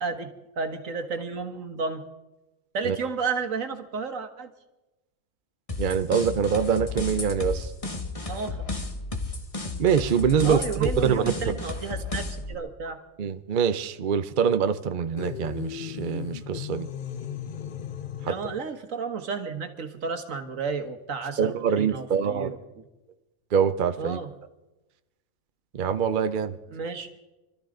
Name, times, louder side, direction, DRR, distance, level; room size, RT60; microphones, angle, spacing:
voice 1, 0.0-2.0 2.7-4.5 8.3-8.8 10.4-13.0 18.3-22.6 24.0-24.3 26.7-27.1, right 5 dB, 70° right, 7 dB, 1.6 m, -32 dB
sound 1, 5.7-12.5, left 3 dB, 25° left, 1.3 m, -33 dB
voice 2, 5.8-7.7 9.8-11.5 13.2-16.9 18.2-18.3 21.4-22.5 23.5-24.2 25.7-26.6, right 7 dB, 50° right, 10 dB, 0.7 m, -24 dB
sound 2, 15.2-18.7, left 9 dB, 55° left, 0.6 m, -36 dB
25.0 x 13.5 x 3.8 m, 1.0 s
omnidirectional pair, 1.4 m